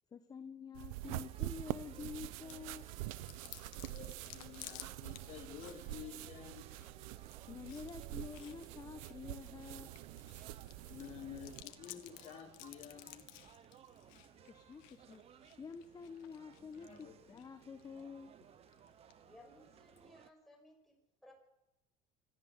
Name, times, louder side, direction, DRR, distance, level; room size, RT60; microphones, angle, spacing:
voice 1, 0.1-2.8 7.5-9.9 14.5-15.2 15.6-18.3, left 5 dB, 20° left, 8 dB, 1.2 m, -49 dB
sound 1, 0.7-11.6, right 17 dB, 90° right, 0.9 m, -46 dB
sound 2, 1.0-20.3, right 9 dB, 35° right, 1.0 m, -60 dB
Chewing mastication, 2.5-20.1, left 17 dB, 80° left, 1.7 m, -57 dB
voice 2, 3.9-6.7 10.9-13.3 16.7-17.4, left 8 dB, 45° left, 2 dB, 4.1 m, -51 dB
voice 3, 19.2-21.0 21.2-21.3, left 1 dB, ahead, 1 dB, 5.8 m, -60 dB
25.5 x 14.0 x 8.3 m, 0.93 s
cardioid pair, 135°, 17 cm